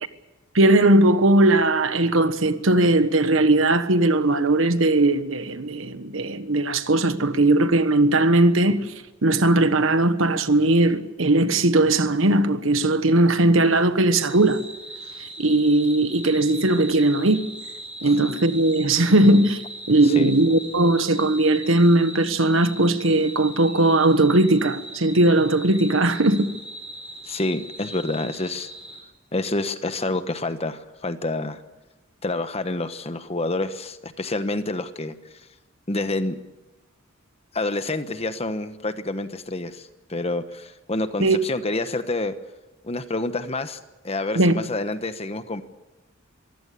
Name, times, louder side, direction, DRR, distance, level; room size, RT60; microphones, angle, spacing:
voice 1, 0.5-8.9 9.2-14.6 15.2-17.5 18.0-26.5 41.2-41.4 44.3-44.5, right 2 dB, 80° right, 1.3 m, -19 dB
sound 1, 14.2-29.0, right 1 dB, 5° right, 3.5 m, -39 dB
voice 2, 27.3-28.7 29.3-31.6 32.2-35.1 35.9-36.4 37.5-42.3 42.8-45.6, left 2 dB, 30° left, 1.2 m, -28 dB
23.5 x 16.0 x 8.5 m
head